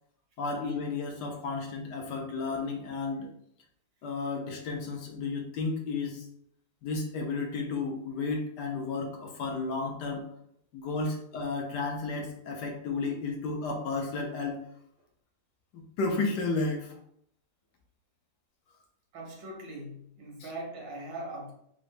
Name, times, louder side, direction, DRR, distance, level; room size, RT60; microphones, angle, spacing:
voice 1, 0.4-3.3 4.0-6.2 6.8-10.3 10.7-14.6 15.7-17.0, left 3 dB, 70° left, 2 dB, 1.1 m, -32 dB
voice 2, 19.1-21.5, right 1 dB, 70° right, 0 dB, 1.6 m, -40 dB
3.8 x 2.6 x 3.2 m, 0.70 s
omnidirectional pair, 2.0 m